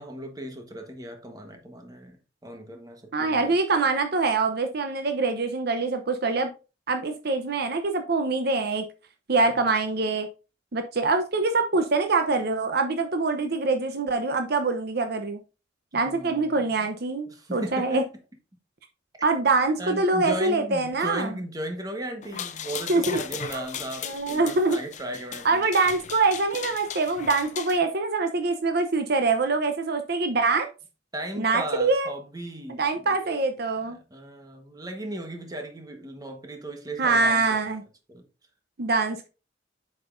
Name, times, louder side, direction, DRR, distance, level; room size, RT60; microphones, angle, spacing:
voice 1, 0.0-3.6 9.5-9.6 15.9-16.6 17.3-18.1 19.8-25.7 31.1-33.4 33.8-37.6 38.1-38.2, right 1 dB, 20° right, 1.2 m, -36 dB
voice 2, 3.1-6.5 6.9-8.8 9.3-10.3 10.7-15.4 15.9-18.0 19.2-21.3 22.9-23.2 23.5-23.6 24.0-24.8 25.4-30.7 31.4-32.1 32.7-34.0 37.0-37.8 38.8-39.3, right 3 dB, 55° right, 0.8 m, -24 dB
sound 1, 22.2-27.8, left 8 dB, 40° left, 0.5 m, -37 dB
7.9 x 5.9 x 2.6 m
head